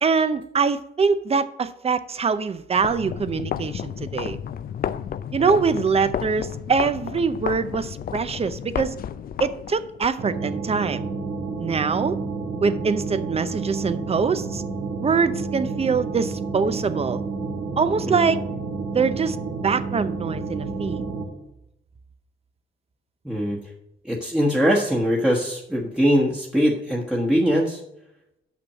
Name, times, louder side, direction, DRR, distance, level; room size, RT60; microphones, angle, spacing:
voice 1, 0.0-4.4 5.3-9.0 9.4-11.1 11.6-12.2 12.6-14.6 15.0-17.2 17.8-18.4 18.9-19.4 19.6-21.0, right 5 dB, 30° right, 13 dB, 0.6 m, -23 dB
sound 1, 2.8-10.1, left 9 dB, 50° left, 0.4 m, -32 dB
sound 2, 10.2-21.2, right 4 dB, 85° right, 1.9 m, -30 dB
voice 2, 23.2-23.6 24.0-27.8, equal, 5° right, -3 dB, 1.3 m, -22 dB
6.2 x 5.9 x 7.2 m, 0.83 s
cardioid pair, 90°, 20 cm